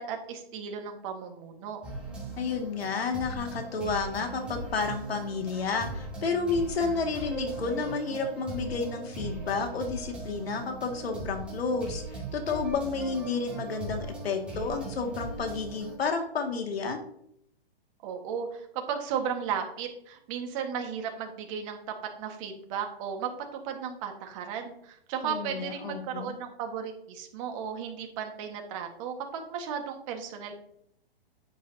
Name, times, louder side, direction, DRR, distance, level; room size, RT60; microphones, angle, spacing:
voice 1, 0.0-1.8 18.0-21.8 22.2-30.5, right 7 dB, 30° right, 4 dB, 1.5 m, -35 dB
sound 1, 1.8-15.9, right 2 dB, 5° right, 2.6 m, -39 dB
voice 2, 2.4-17.0 25.2-26.4, left 4 dB, 75° left, 4 dB, 2.1 m, -31 dB
10.5 x 7.7 x 2.8 m, 0.72 s
hypercardioid pair, 150°, 31 cm